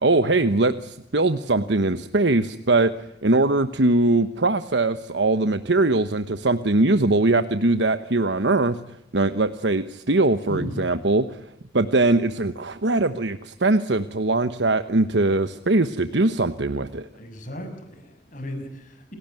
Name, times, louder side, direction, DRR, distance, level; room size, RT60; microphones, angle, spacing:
voice 1, 0.0-8.8 9.1-11.4 11.7-17.1, right 2 dB, 80° right, 10 dB, 1.2 m, -21 dB
voice 2, 10.5-10.9 17.1-19.2, equal, 45° left, 7 dB, 6.6 m, -35 dB
28.5 x 18.5 x 9.3 m, 0.84 s
head